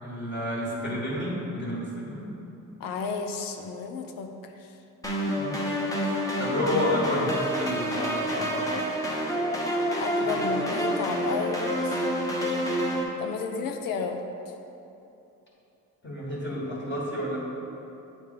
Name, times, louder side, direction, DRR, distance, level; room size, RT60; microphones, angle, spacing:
voice 1, 0.0-2.3 5.3-5.6 6.4-8.7 10.6-10.7 16.0-17.4, left 1 dB, 35° left, -5 dB, 1.5 m, -30 dB
voice 2, 2.8-4.8 10.0-12.0 13.2-14.2, left 5 dB, 85° left, 4 dB, 0.6 m, -32 dB
sound 1, 5.0-13.0, equal, 10° left, 0.9 m, -28 dB
8.0 x 3.2 x 5.0 m, 2.9 s
cardioid pair, 100°, 33 cm